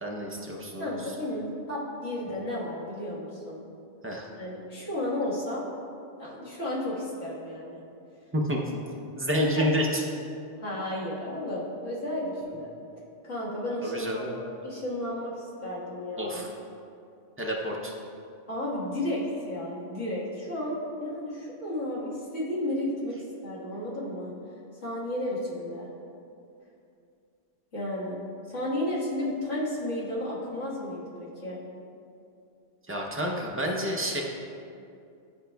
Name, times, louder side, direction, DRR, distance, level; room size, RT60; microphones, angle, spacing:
voice 1, 0.0-0.9 4.0-4.2 8.3-8.6 9.2-10.0 13.8-14.3 16.2-16.5 17.4-17.9 32.9-34.2, equal, 20° right, -2 dB, 0.3 m, -29 dB
voice 2, 0.8-3.6 4.4-5.6 6.2-7.8 9.5-9.7 10.6-12.7 13.2-14.2 14.6-16.4 18.5-24.3 24.8-25.9 27.7-28.2 28.5-31.6, left 1 dB, 80° left, -8 dB, 1.9 m, -33 dB
10.5 x 5.0 x 2.3 m, 2.5 s
omnidirectional pair, 1.3 m